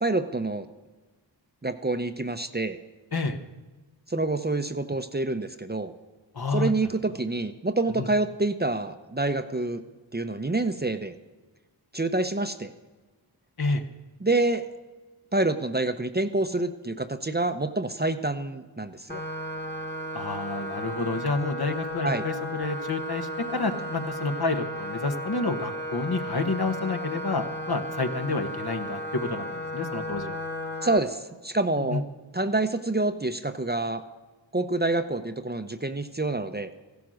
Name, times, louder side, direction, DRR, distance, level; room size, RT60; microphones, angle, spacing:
voice 1, 0.0-0.7 1.6-2.8 4.1-5.9 6.5-9.8 10.1-11.1 11.9-12.7 14.2-14.7 15.3-19.2 22.0-22.2 30.8-32.0 32.3-34.0 34.5-36.7, right 2 dB, 20° right, 9 dB, 0.8 m, -27 dB
voice 2, 6.3-6.7 8.0-8.1 13.6-13.8 20.1-30.4 31.9-32.0, left 3 dB, 55° left, 6 dB, 1.4 m, -29 dB
sound 1, 19.1-31.0, equal, 20° left, 1.7 m, -34 dB
15.5 x 12.0 x 6.4 m, 1.3 s
cardioid pair, 40°, 46 cm